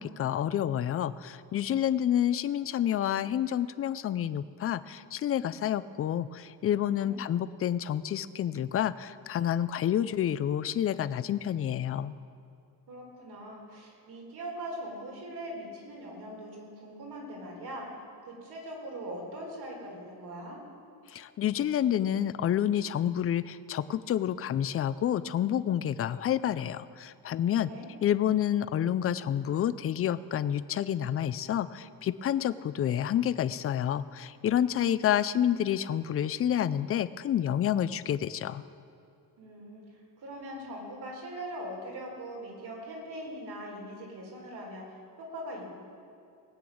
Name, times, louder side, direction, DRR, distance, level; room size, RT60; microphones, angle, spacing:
voice 1, 0.0-12.2 21.1-27.7 28.0-38.6, left 10 dB, 40° left, 15 dB, 0.4 m, -29 dB
voice 2, 7.0-7.4 12.9-17.9 18.3-20.6 27.6-27.9 39.4-44.9 45.2-45.7, right 1 dB, 75° right, -1 dB, 3.8 m, -41 dB
19.5 x 8.7 x 6.3 m, 2.6 s
cardioid pair, 170°, 39 cm